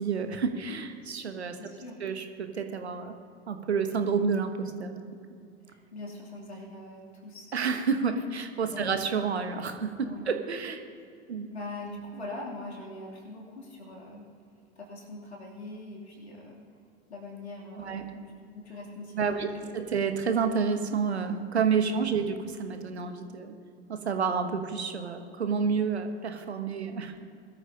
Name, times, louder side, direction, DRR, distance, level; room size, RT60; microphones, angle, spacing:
voice 1, 0.0-1.6 2.0-3.1 3.5-5.2 7.5-10.8 11.3-11.5 17.8-18.0 19.1-23.5 23.9-27.3, right 5 dB, 80° right, 7 dB, 1.2 m, -29 dB
voice 2, 1.5-2.0 5.7-7.5 8.7-8.9 10.0-10.3 11.5-14.2 14.7-16.6 17.1-18.2 18.5-19.7 21.8-22.1, left 2 dB, 85° left, -3 dB, 3.0 m, -42 dB
21.0 x 13.0 x 2.9 m, 2.4 s
figure-of-eight pair, 80°, 32 cm